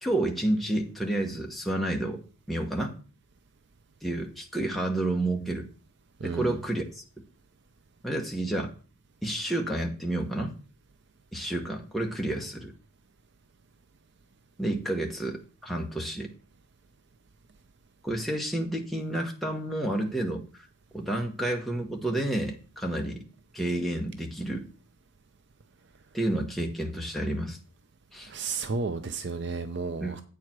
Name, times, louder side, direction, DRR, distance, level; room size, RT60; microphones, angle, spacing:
voice 1, 0.0-2.2 2.5-2.9 4.0-5.7 6.2-7.0 8.0-8.7 9.2-10.5 11.3-12.7 14.6-16.3 18.0-20.4 20.9-23.2 23.5-24.7 26.1-27.6 28.1-28.3 30.0-30.2, right 1 dB, ahead, 1.1 m, -30 dB
voice 2, 6.2-6.5 28.3-30.2, right 4 dB, 50° right, 0.5 m, -32 dB
8.5 x 4.8 x 5.8 m
head